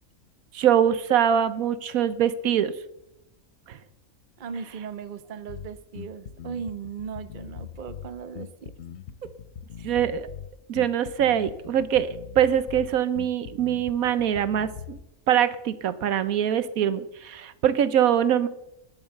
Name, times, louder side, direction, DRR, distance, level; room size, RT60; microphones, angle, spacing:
voice 1, 0.5-2.7 3.7-3.8 9.8-10.3 10.7-15.0 15.3-18.5, right 9 dB, 80° right, 14 dB, 1.2 m, -23 dB
voice 2, 4.4-8.7 9.2-9.3 9.8-10.0, right 6 dB, 40° right, 12 dB, 0.9 m, -37 dB
Bass guitar, 5.5-15.1, left 8 dB, 55° left, 0.9 m, -41 dB
19.5 x 7.2 x 6.6 m, 0.87 s
omnidirectional pair, 1.5 m